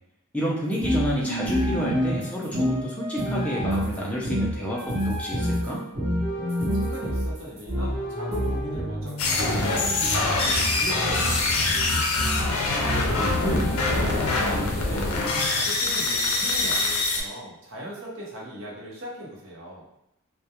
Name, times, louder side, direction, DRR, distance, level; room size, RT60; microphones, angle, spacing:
voice 1, 0.3-5.8 13.2-13.7, equal, 5° left, -5 dB, 0.4 m, -29 dB
sound 1, 0.7-14.1, equal, 30° right, 0.7 m, -28 dB
voice 2, 6.8-12.6 13.3-15.1 15.5-19.8, equal, 60° right, -4 dB, 0.7 m, -39 dB
sound 2, 9.2-17.2, left 3 dB, 75° left, 0.5 m, -24 dB
2.3 x 2.2 x 2.8 m, 0.85 s
head